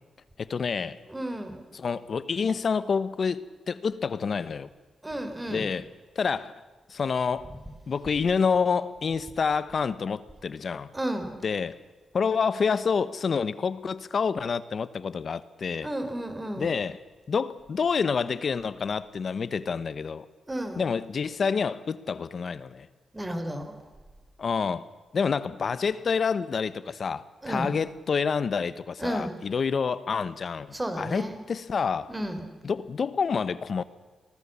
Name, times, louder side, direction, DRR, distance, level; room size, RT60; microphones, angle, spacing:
voice 1, 0.4-1.0 1.7-4.7 5.5-5.8 6.1-6.5 6.9-7.5 7.9-10.9 11.4-11.8 12.1-15.9 16.6-17.0 17.3-20.3 20.8-22.9 24.4-24.9 25.1-32.1 32.6-33.8, left 5 dB, 55° left, 1.2 m, -28 dB
voice 2, 1.1-1.7 5.0-5.7 10.9-11.4 15.8-16.8 20.5-20.9 23.1-23.8 27.4-27.7 29.0-29.3 30.7-31.5 32.1-32.6, right 1 dB, 15° right, 4.5 m, -33 dB
26.5 x 19.0 x 7.2 m
cardioid pair, 85°, 0 cm